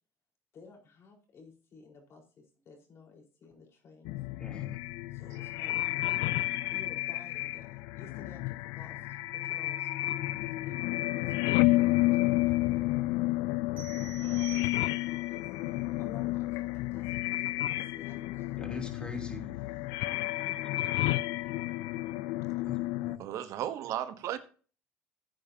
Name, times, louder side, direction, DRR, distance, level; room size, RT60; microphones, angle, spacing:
voice 1, 0.5-4.1 5.1-5.8 6.7-7.7 7.9-12.8 14.2-18.6 20.9-21.6, left 4 dB, 50° left, 4.4 m, -54 dB
sound 1, 4.0-23.2, left 18 dB, 85° left, 0.5 m, -31 dB
voice 2, 4.4-4.8 18.6-19.9 22.6-23.2, left 2 dB, 15° left, 3.4 m, -43 dB
sound 2, 13.8-15.3, right 11 dB, 25° right, 4.8 m, -48 dB
voice 3, 23.2-24.4, right 11 dB, 65° right, 1.0 m, -34 dB
15.0 x 8.7 x 2.8 m
supercardioid pair, 95°, 6 cm